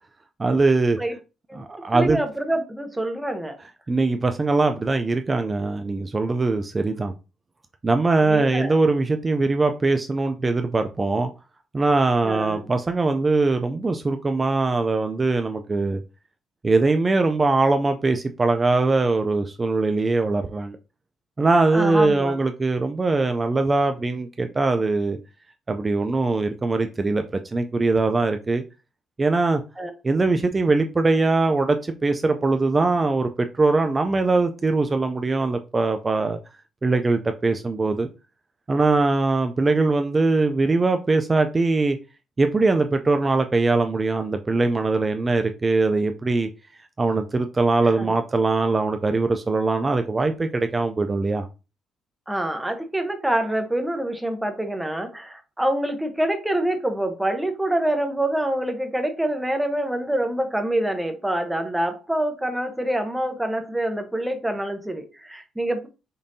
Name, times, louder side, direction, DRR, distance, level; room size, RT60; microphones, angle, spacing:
voice 1, 0.4-1.0 1.6-2.2 3.9-7.1 7.8-11.3 11.7-16.0 16.6-20.8 21.4-25.2 25.7-27.2 27.5-28.6 29.2-29.6 30.0-33.3 33.5-36.4 36.8-38.1 38.7-42.0 42.4-46.5 47.0-51.5, right 3 dB, 25° right, 7 dB, 0.3 m, -21 dB
voice 2, 1.9-3.6 8.2-8.8 12.2-12.6 21.7-22.3 29.8-29.9 48.0-48.1 52.3-65.9, right 1 dB, 5° right, 6 dB, 0.8 m, -26 dB
5.2 x 2.6 x 2.6 m, 0.30 s
cardioid pair, 110°, 0 cm